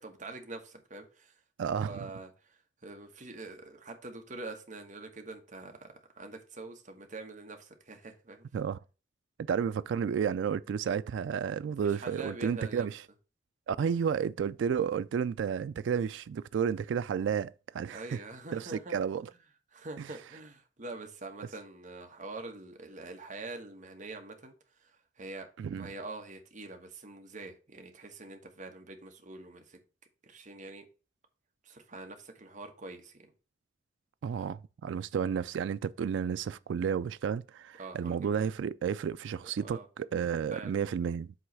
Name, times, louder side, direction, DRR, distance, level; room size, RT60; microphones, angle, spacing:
voice 1, 0.0-1.3 1.8-8.5 11.8-12.9 17.9-19.0 19.7-24.5 24.8-25.5 25.7-29.8 30.2-30.9 31.6-33.3 37.8-38.5 39.6-39.9 40.5-40.7, right 2 dB, 45° right, 1.2 m, -45 dB
voice 2, 1.6-2.1 8.5-8.8 9.5-13.0 13.7-18.2 18.5-19.3 20.0-20.1 25.6-25.9 34.2-41.3, right 7 dB, 90° right, 0.3 m, -32 dB
7.8 x 3.1 x 6.0 m
head